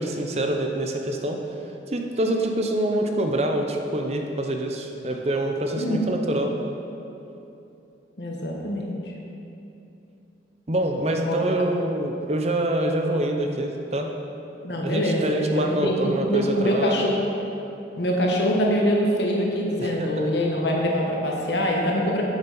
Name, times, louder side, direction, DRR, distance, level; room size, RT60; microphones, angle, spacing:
voice 1, 0.0-1.4 1.9-6.5 10.7-14.1 14.8-17.1 19.8-20.3, right 1 dB, 35° right, 3 dB, 0.6 m, -25 dB
voice 2, 5.7-6.2 8.2-9.0 11.2-11.5 14.6-17.1 18.0-22.2, equal, 65° left, -1 dB, 1.3 m, -24 dB
7.1 x 6.7 x 5.5 m, 2.9 s
head